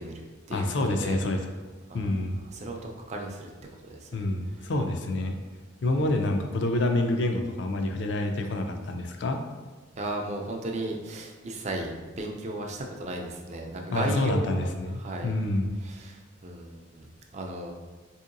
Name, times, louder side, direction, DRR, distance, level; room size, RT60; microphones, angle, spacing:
voice 1, 0.0-1.2 1.9-2.1 2.5-3.5 3.8-4.3 5.8-6.0 10.0-15.3 15.8-17.1 17.3-17.7, right 2 dB, 35° right, 1 dB, 0.4 m, -35 dB
voice 2, 0.5-1.4 1.9-2.5 4.1-5.3 5.8-9.4 13.9-15.8, left 2 dB, 60° left, 5 dB, 0.4 m, -27 dB
4.4 x 2.8 x 2.5 m, 1.3 s
head